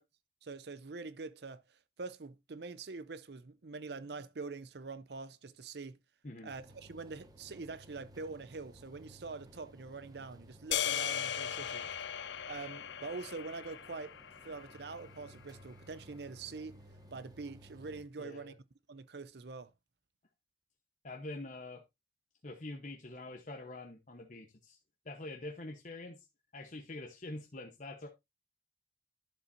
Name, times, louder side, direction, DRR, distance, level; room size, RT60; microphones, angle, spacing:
voice 1, 0.4-6.0 6.4-11.9 12.1-14.2 14.4-16.8 17.1-18.5 18.9-19.7, right 4 dB, 65° right, 0.6 m, -45 dB
sound 1, 6.5-18.0, equal, 20° right, 1.0 m, -57 dB
sound 2, 10.7-15.1, left 9 dB, 80° left, 0.5 m, -38 dB
voice 2, 18.2-18.5 21.0-21.8 22.4-24.8 25.0-26.2 26.5-28.1, left 2 dB, 45° left, 0.9 m, -45 dB
11.0 x 7.1 x 2.6 m
head